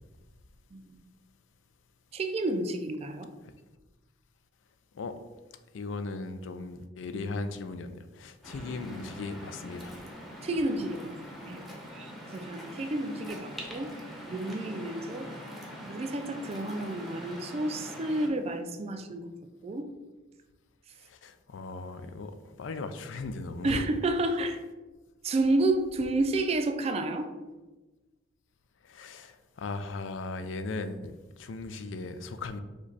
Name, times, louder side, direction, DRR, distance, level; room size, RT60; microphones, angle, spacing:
voice 1, 0.7-1.0 2.1-3.3 10.4-11.6 11.9-13.9 14.2-15.3 15.8-19.3 19.6-19.9 23.6-24.6 25.2-27.3, right 2 dB, 35° right, 7 dB, 0.3 m, -30 dB
voice 2, 5.7-9.9 21.2-22.3 22.6-23.8 28.9-32.6, left 3 dB, 80° left, 10 dB, 0.4 m, -37 dB
Waves surf, 8.4-18.3, equal, ahead, 0.7 m, -43 dB
5.0 x 2.2 x 4.0 m, 1.2 s
head